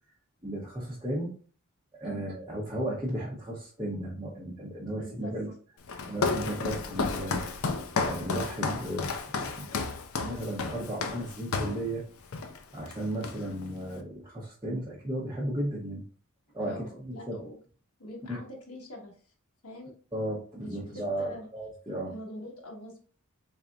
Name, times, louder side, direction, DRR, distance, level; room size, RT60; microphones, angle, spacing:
voice 1, 0.4-1.3 1.9-5.5 6.1-7.4 8.0-9.1 9.5-9.7 10.2-12.0 12.7-16.0 16.5-17.4 18.2-18.4 20.1-22.1, right 1 dB, 15° right, -6 dB, 0.7 m, -34 dB
voice 2, 4.9-5.3 16.6-17.6 18.0-19.1 19.6-19.9 20.6-21.4 22.1-23.0, left 1 dB, 90° left, -1 dB, 1.1 m, -43 dB
Walk footsteps, 5.9-11.8 12.3-12.6 12.9-13.7, left 4 dB, 70° left, 0.5 m, -32 dB
3.9 x 3.4 x 2.3 m, 0.42 s
head